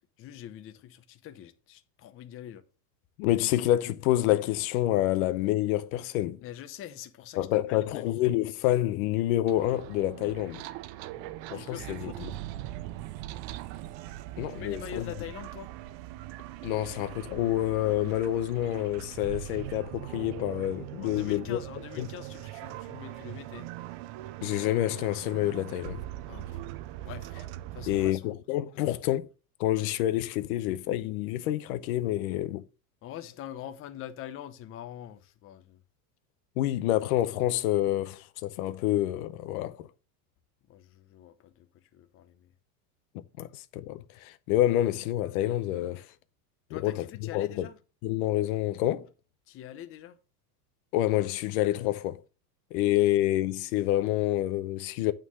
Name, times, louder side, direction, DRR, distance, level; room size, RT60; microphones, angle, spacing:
voice 1, 0.2-2.6 6.4-8.2 11.1-12.5 14.5-15.7 21.0-23.7 26.3-26.6 27.0-27.4 27.7-28.3 33.0-35.8 40.7-42.5 46.7-47.8 49.5-50.2, left 11 dB, 25° left, 0.7 m, -44 dB
voice 2, 3.2-6.4 7.4-10.6 11.5-12.3 14.4-15.1 16.6-21.6 22.0-22.1 24.4-26.0 27.9-29.3 29.6-32.6 36.6-39.9 43.1-46.1 46.7-47.5 48.0-49.1 50.9-52.2 52.7-55.1, left 14 dB, 60° left, 0.7 m, -28 dB
sound 1, 9.5-28.1, right 14 dB, 45° right, 0.5 m, -41 dB
8.9 x 3.8 x 6.2 m
supercardioid pair, 145°, 48 cm